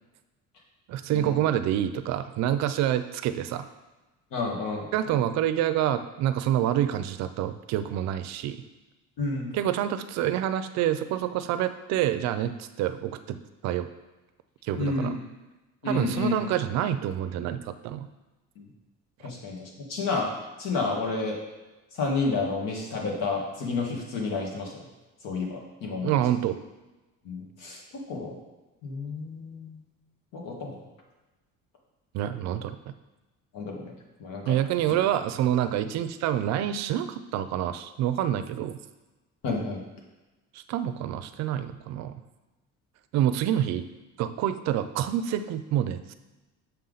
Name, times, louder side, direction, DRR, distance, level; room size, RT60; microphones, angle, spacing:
voice 1, 0.9-3.7 4.9-8.6 9.5-13.4 13.6-13.9 14.6-15.2 15.9-18.1 26.0-26.6 32.1-32.9 34.5-38.8 40.5-42.2 43.1-43.9 44.2-46.1, right 11 dB, 55° right, 11 dB, 0.5 m, -27 dB
voice 2, 4.3-4.9 9.2-9.5 14.8-15.2 15.8-16.4 18.6-18.7 19.2-20.3 20.6-21.4 21.9-24.8 25.2-26.1 27.2-27.8 28.1-28.4 28.8-29.8 30.3-30.7 33.5-33.9 34.2-34.6 39.4-39.8, left 3 dB, 75° left, -1 dB, 1.8 m, -30 dB
6.8 x 5.6 x 3.9 m, 1.1 s
cardioid pair, 175°, 32 cm